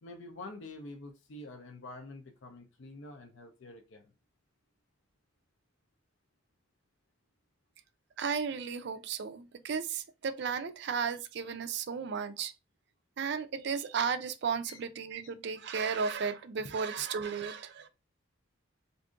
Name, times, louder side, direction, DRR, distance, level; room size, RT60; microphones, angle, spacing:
voice 1, 0.0-4.1 14.6-14.8, left 2 dB, 60° left, 0.5 m, -47 dB
voice 2, 8.2-12.5 13.2-17.9, right 6 dB, 55° right, 0.4 m, -34 dB
2.6 x 2.4 x 3.7 m
head